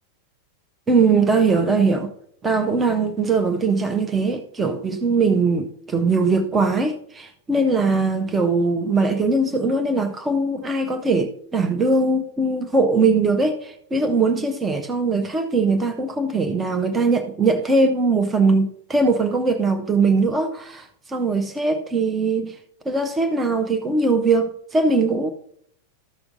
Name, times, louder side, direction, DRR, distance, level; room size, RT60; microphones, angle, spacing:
voice 1, 0.9-2.1 2.4-22.6 22.9-25.3, right 3 dB, 15° right, 0.7 m, -21 dB
14.0 x 5.8 x 2.6 m
figure-of-eight pair, 90°, 0 cm